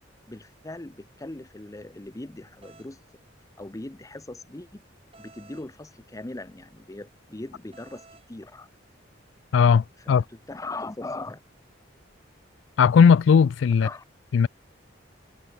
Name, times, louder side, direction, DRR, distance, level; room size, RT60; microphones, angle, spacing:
voice 1, 0.3-3.0 3.6-4.8 5.2-8.7 10.1-11.4 13.8-14.0, left 2 dB, 15° left, 0.6 m, -39 dB
sound 1, 2.6-2.9 5.1-5.7 7.7-8.3, right 4 dB, 30° right, 2.9 m, -53 dB
voice 2, 9.5-10.2 12.8-13.9 14.3-14.5, left 6 dB, 70° left, 0.3 m, -17 dB
head